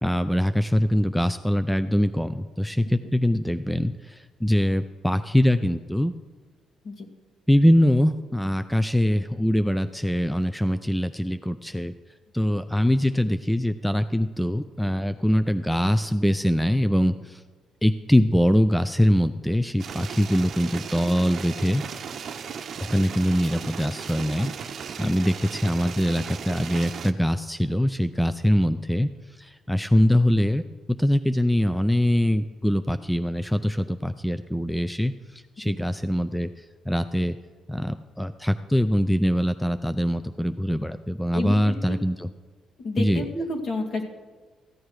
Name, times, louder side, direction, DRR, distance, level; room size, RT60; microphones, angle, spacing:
voice 1, 0.0-6.1 7.5-11.9 12.3-17.4 17.8-21.8 22.8-37.4 37.7-42.3 43.0-43.3, equal, 5° left, 11 dB, 0.4 m, -23 dB
sound 1, 19.8-27.1, right 7 dB, 60° right, 0.7 m, -36 dB
voice 2, 41.3-42.0 42.8-44.0, left 2 dB, 55° left, 1 dB, 2.2 m, -31 dB
15.0 x 8.6 x 4.8 m, 1.4 s
cardioid pair, 90°, 0 cm